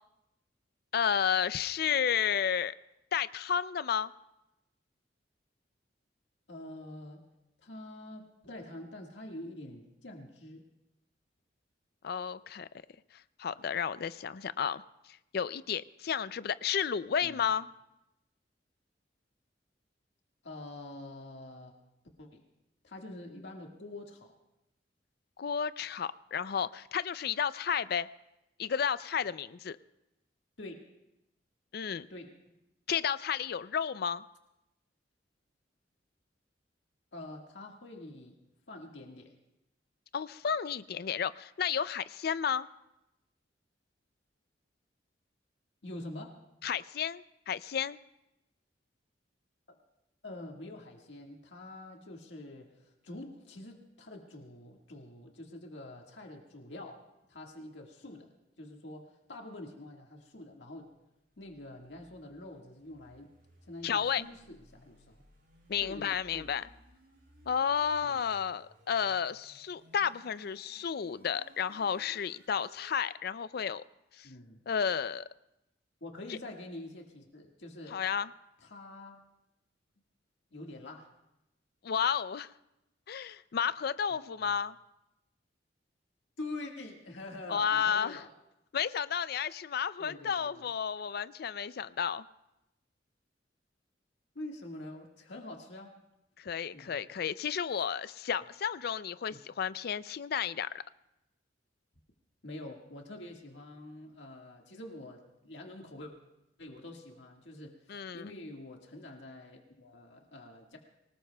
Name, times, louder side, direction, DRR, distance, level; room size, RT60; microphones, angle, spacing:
voice 1, 0.9-2.7 3.1-4.1 12.0-12.7 13.4-14.8 15.3-17.7 25.4-28.1 28.6-29.8 31.7-32.1 32.9-34.2 40.1-42.7 46.6-48.0 63.8-64.2 65.7-66.7 67.5-73.8 74.2-74.3 74.7-75.3 76.3-76.4 77.9-78.3 81.8-82.5 83.1-84.8 87.5-88.2 88.7-92.2 96.4-100.8 107.9-108.3, left 7 dB, 60° left, 16 dB, 0.4 m, -32 dB
voice 2, 6.5-7.3 7.6-10.7 17.2-17.5 20.4-21.7 22.2-22.4 22.8-24.3 30.6-30.9 32.1-32.4 37.1-38.4 38.7-39.3 45.8-46.4 50.2-57.0 57.3-58.3 58.6-60.9 61.4-63.3 63.6-65.2 65.8-66.5 68.0-68.2 74.2-74.6 76.0-78.0 78.6-79.2 80.5-81.1 84.1-84.2 84.4-84.5 86.4-88.3 90.0-90.6 94.4-95.9 96.7-97.0 97.8-97.9 99.3-99.4 102.4-106.1 106.6-110.8, left 2 dB, 75° left, 1 dB, 1.7 m, -46 dB
sound 1, 60.8-73.0, equal, 60° right, 5.7 m, -61 dB
24.5 x 19.0 x 2.3 m, 0.90 s
head